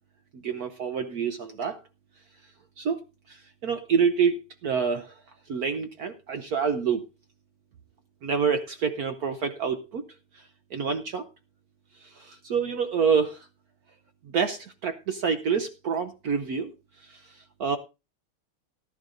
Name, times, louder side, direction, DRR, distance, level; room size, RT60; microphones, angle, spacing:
voice 1, 0.3-1.8 2.8-3.0 3.3-5.2 5.5-7.0 8.2-10.1 10.3-11.2 12.0-13.5 14.2-16.7 17.0-17.8, right 6 dB, 65° right, 1.0 m, -27 dB
18.5 x 11.0 x 2.6 m
omnidirectional pair, 2.3 m